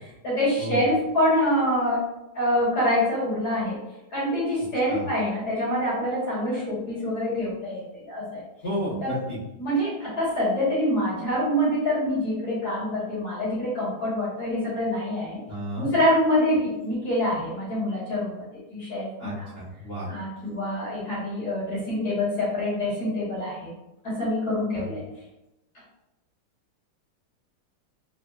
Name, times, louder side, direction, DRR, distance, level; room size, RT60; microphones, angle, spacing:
voice 1, 0.2-2.0 2.3-3.8 4.1-8.4 9.0-9.1 9.6-15.4 15.8-19.5 20.0-23.7 24.0-25.0, left 1 dB, 55° left, -8 dB, 1.8 m, -26 dB
voice 2, 8.6-9.4 15.5-15.9 19.2-20.1 24.7-24.9, equal, 70° left, -9 dB, 0.5 m, -32 dB
4.4 x 2.2 x 2.3 m, 0.94 s
omnidirectional pair, 2.2 m